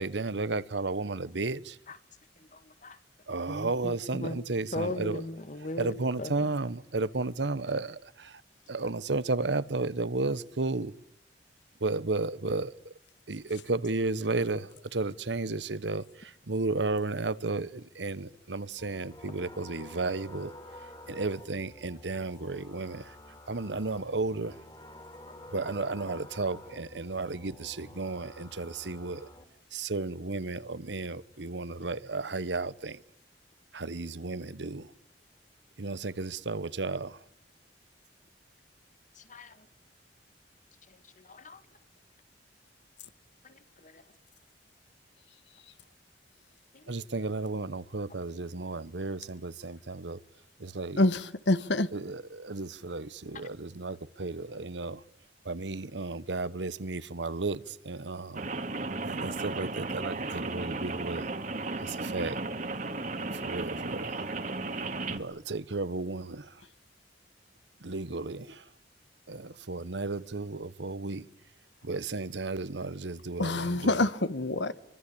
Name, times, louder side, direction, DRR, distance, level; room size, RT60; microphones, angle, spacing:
voice 1, 0.0-1.8 3.3-5.2 5.8-8.4 8.7-10.9 11.8-12.9 13.3-20.5 21.1-23.1 23.5-24.6 25.5-29.3 29.7-33.0 33.7-34.9 35.8-37.2 46.9-50.2 50.6-51.0 51.9-55.0 55.4-58.4 59.0-61.3 61.8-62.4 63.3-64.3 65.1-66.6 67.8-68.6 69.3-71.3 71.8-73.9, right 3 dB, 80° right, 1.1 m, -33 dB
voice 2, 2.4-3.0 3.5-4.4 4.7-6.5 39.2-39.7 41.2-41.6 43.4-44.0 46.7-47.0, left 1 dB, 45° left, 2.1 m, -39 dB
sound 1, 18.8-29.4, left 1 dB, 25° left, 3.5 m, -50 dB
voice 3, 51.0-51.9 73.4-74.7, left 2 dB, 85° left, 1.5 m, -26 dB
Rain, 58.4-65.2, right 3 dB, 45° right, 2.1 m, -35 dB
25.5 x 24.5 x 8.7 m
head